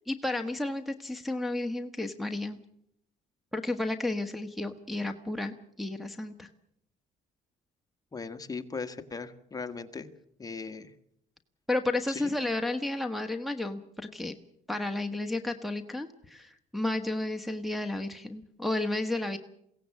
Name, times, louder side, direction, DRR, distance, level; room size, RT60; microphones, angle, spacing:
voice 1, 0.1-2.6 3.5-6.5 11.7-14.3 14.7-19.4, left 2 dB, ahead, 4 dB, 1.3 m, -32 dB
voice 2, 8.1-10.1 10.4-10.9 12.1-12.3, left 4 dB, 20° left, 8 dB, 1.5 m, -38 dB
22.5 x 17.0 x 8.4 m, 0.75 s
cardioid pair, 110°, 17 cm